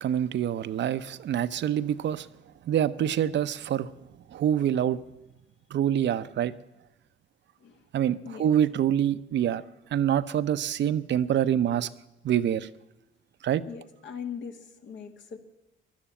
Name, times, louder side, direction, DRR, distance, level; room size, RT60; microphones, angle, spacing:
voice 1, 0.0-2.3 2.7-3.9 4.3-5.0 5.7-6.5 7.9-9.6 9.9-11.9 12.2-12.7 13.4-13.6, right 10 dB, 65° right, 0.7 m, -26 dB
voice 2, 13.7-15.4, left 7 dB, 70° left, 2.1 m, -40 dB
14.5 x 11.5 x 8.7 m
cardioid pair, 90°, 20 cm